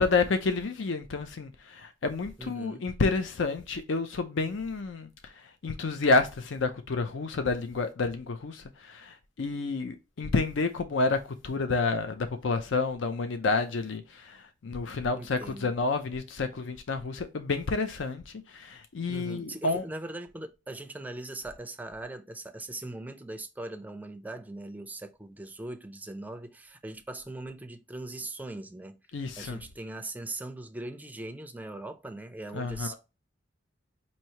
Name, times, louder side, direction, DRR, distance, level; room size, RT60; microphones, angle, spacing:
voice 1, 0.0-5.3 5.6-19.8 29.1-29.6 32.5-32.9, left 3 dB, 75° left, 0.5 m, -29 dB
voice 2, 2.4-2.8 15.1-15.7 19.1-29.0 29.4-32.9, right 2 dB, 10° right, 0.4 m, -40 dB
4.4 x 2.7 x 2.8 m
head